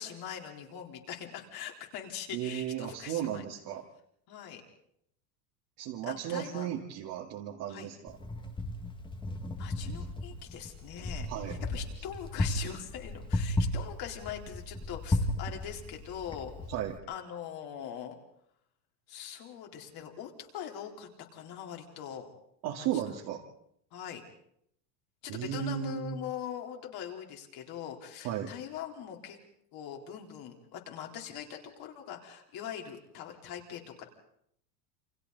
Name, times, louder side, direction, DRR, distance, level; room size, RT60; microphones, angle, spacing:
voice 1, 0.0-3.5 4.3-4.6 6.0-6.7 7.7-7.9 9.6-16.5 17.1-18.2 19.1-22.3 22.8-23.0 23.9-24.2 25.2-29.4 29.7-34.0, left 9 dB, 45° left, 1 dB, 4.2 m, -42 dB
voice 2, 2.3-3.9 5.8-8.2 11.3-11.6 16.7-17.0 22.6-23.4 25.3-26.2 28.2-28.5, right 11 dB, 50° right, -1 dB, 2.4 m, -35 dB
Wind, 8.1-17.0, left 1 dB, 10° left, 1.8 m, -35 dB
28.5 x 25.5 x 4.1 m, 0.71 s
supercardioid pair, 135°, 49 cm